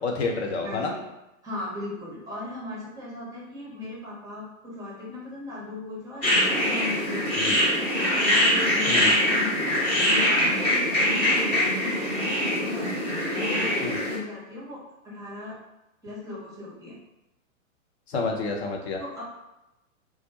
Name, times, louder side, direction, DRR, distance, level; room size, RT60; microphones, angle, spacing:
voice 1, 0.0-0.9 7.4-7.5 8.9-9.1 13.8-14.0 18.1-19.0, left 4 dB, 50° left, 1 dB, 0.6 m, -29 dB
voice 2, 0.6-1.0 1.4-7.9 8.3-13.0 13.3-15.6 16.0-17.0 19.0-19.2, left 2 dB, 10° right, -6 dB, 0.7 m, -38 dB
sound 1, 6.2-14.2, left 1 dB, 25° left, 1.0 m, -23 dB
2.4 x 2.1 x 2.7 m, 0.93 s
figure-of-eight pair, 115°, 41 cm